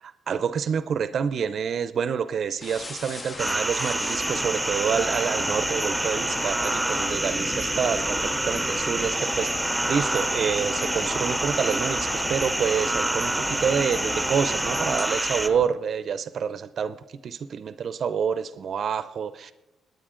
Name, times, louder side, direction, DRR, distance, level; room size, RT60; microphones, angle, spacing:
voice 1, 0.0-17.0 17.2-19.5, right 7 dB, 55° right, 13 dB, 0.5 m, -28 dB
sound 1, 2.6-15.7, left 3 dB, 30° left, 0.6 m, -36 dB
sound 2, 3.4-15.5, right 1 dB, 5° right, 0.9 m, -27 dB
25.5 x 9.2 x 3.8 m, 1.0 s
cardioid pair, 90°, 0 cm